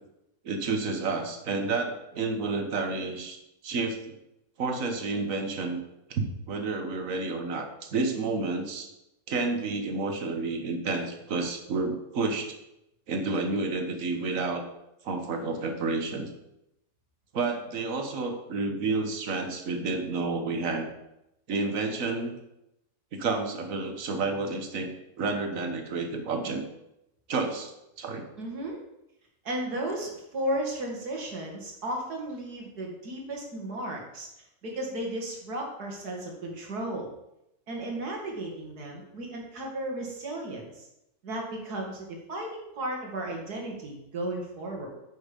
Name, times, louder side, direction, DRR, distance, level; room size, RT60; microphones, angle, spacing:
voice 1, 0.4-3.4 3.6-4.1 4.6-5.8 6.1-8.9 9.3-12.6 13.1-14.7 15.0-16.3 17.3-20.9 21.5-22.3 23.1-24.9 25.2-26.6 27.3-27.7 28.0-28.3, right 3 dB, 60° right, 6 dB, 1.6 m, -30 dB
voice 2, 28.4-28.8 29.4-34.3 34.6-37.1 37.7-40.9 41.2-44.9, right 1 dB, 85° right, 0 dB, 2.5 m, -34 dB
9.3 x 6.4 x 5.2 m, 0.87 s
omnidirectional pair, 1.6 m